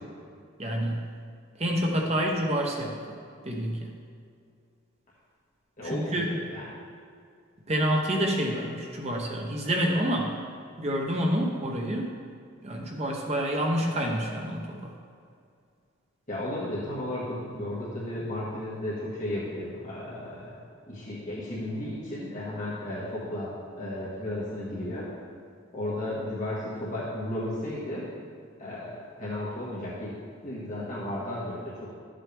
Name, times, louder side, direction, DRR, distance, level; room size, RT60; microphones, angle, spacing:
voice 1, 0.6-1.1 1.6-3.0 3.4-3.8 5.9-6.3 7.7-10.4 10.8-12.1 12.6-14.9, equal, 30° right, 0 dB, 0.9 m, -28 dB
voice 2, 5.8-6.6 16.3-20.6 20.9-25.1 25.7-28.1 28.6-30.2 30.4-31.9, left 1 dB, 35° left, -8 dB, 1.7 m, -34 dB
12.5 x 7.6 x 3.5 m, 2.3 s
head